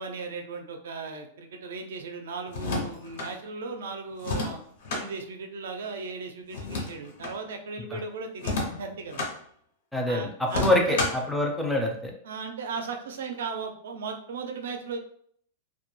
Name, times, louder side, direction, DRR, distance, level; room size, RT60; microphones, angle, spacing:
voice 1, 0.0-4.6 4.9-9.2 10.1-11.1 12.2-15.0, right 4 dB, 90° right, 5 dB, 0.4 m, -36 dB
sound 1, 2.5-3.3 4.2-5.1 6.5-7.4 8.4-9.3 10.5-11.3, left 2 dB, 65° left, 0.6 m, -30 dB
voice 2, 9.9-12.1, left 1 dB, ahead, 0 dB, 0.4 m, -26 dB
2.2 x 2.1 x 3.0 m, 0.64 s
supercardioid pair, 160°, 0 cm